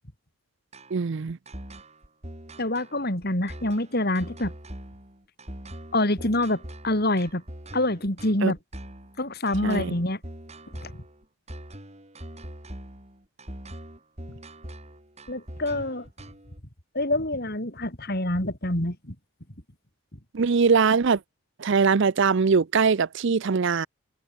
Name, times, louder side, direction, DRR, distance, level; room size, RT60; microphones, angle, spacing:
sound 1, 0.7-16.6, right 1 dB, 30° right, 5.5 m, -42 dB
voice 1, 0.9-1.4 8.4-8.5 9.6-9.9 20.3-21.2 21.6-23.9, right 5 dB, 55° right, 0.5 m, -22 dB
voice 2, 2.6-4.5 5.9-7.4 7.7-8.6 9.2-10.2 10.7-11.0 15.3-16.1 16.9-19.2, left 1 dB, 45° left, 4.5 m, -26 dB
head